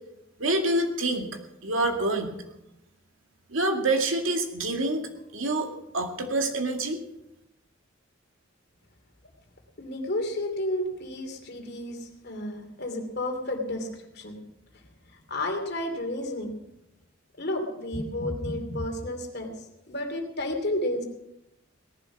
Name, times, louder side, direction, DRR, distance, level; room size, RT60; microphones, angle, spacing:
voice 1, 0.4-2.3 3.5-5.1 5.3-7.0, right 2 dB, 75° right, 4 dB, 2.3 m, -27 dB
voice 2, 9.8-13.9 14.1-14.4 15.3-16.5 17.4-19.5 19.9-21.0, left 1 dB, 55° left, 4 dB, 2.8 m, -31 dB
18.0 x 11.5 x 6.0 m, 0.87 s
head